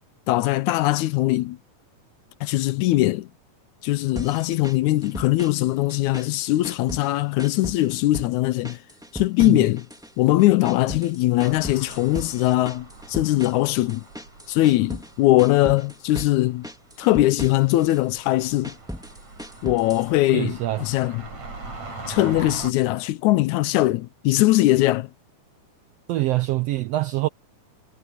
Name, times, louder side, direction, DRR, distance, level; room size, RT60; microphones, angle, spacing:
voice 1, 0.3-1.6 2.4-3.3 3.8-8.8 9.1-9.9 10.2-14.0 14.5-16.7 17.0-18.7 19.6-21.2 22.1-25.1, left 17 dB, 80° left, 2.0 m, -21 dB
sound 1, 4.1-5.6 5.9-7.1 7.4-8.3 8.6-10.1 10.4-15.1 15.4-16.3 16.6-18.0 18.4-20.1, equal, ahead, 2.0 m, -37 dB
sound 2, 11.4-22.7, right 2 dB, 65° right, 6.9 m, -41 dB
voice 2, 20.3-21.0 26.1-27.3, right 16 dB, 85° right, 1.4 m, -25 dB
omnidirectional pair, 3.5 m